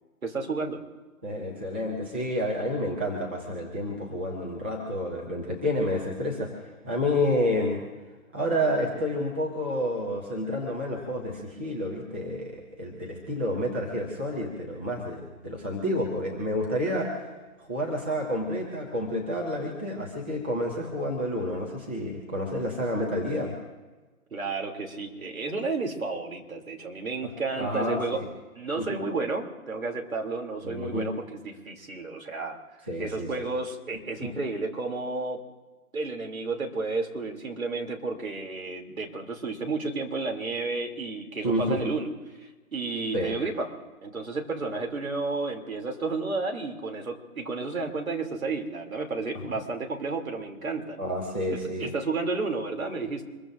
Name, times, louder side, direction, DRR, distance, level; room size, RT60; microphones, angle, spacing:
voice 1, 0.2-0.8 24.3-28.2 28.5-32.6 33.0-35.4 35.9-42.1 42.7-43.7 44.0-51.0 51.5-53.2, right 3 dB, 70° right, 2 dB, 3.0 m, -32 dB
voice 2, 1.2-7.8 8.3-17.3 17.6-23.5 27.2-28.2 28.8-29.0 30.6-31.1 32.9-33.3 34.2-34.3 41.4-41.9 43.1-43.3 51.0-51.9, left 1 dB, 10° right, -3 dB, 0.7 m, -29 dB
25.5 x 22.0 x 2.6 m, 1.2 s
figure-of-eight pair, 150°, 44 cm